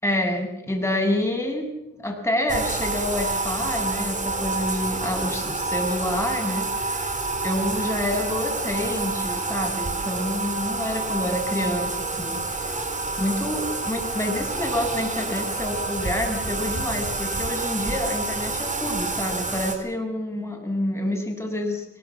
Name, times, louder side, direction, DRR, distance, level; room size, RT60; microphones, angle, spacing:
voice 1, 0.0-1.7 2.0-7.1 7.4-12.7 13.2-21.9, left 1 dB, 10° left, 2 dB, 7.4 m, -28 dB
Bathtub (filling or washing), 2.5-19.7, right 3 dB, 25° right, 4.1 m, -28 dB
24.0 x 19.0 x 7.3 m, 0.89 s
cardioid pair, 90°, 30 cm